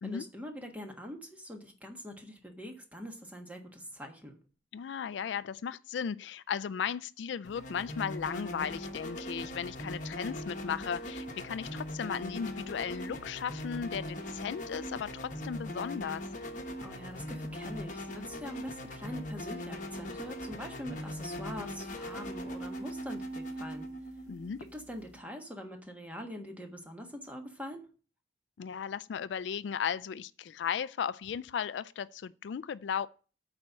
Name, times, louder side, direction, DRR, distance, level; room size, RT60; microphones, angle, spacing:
voice 1, 0.0-4.3 16.8-23.9 24.6-27.9, equal, 10° right, 1.4 m, -44 dB
voice 2, 4.7-16.3 24.3-24.6 28.6-33.1, left 7 dB, 75° left, 0.3 m, -36 dB
sound 1, 7.4-25.2, equal, 45° left, 1.1 m, -40 dB
8.9 x 4.3 x 7.3 m
head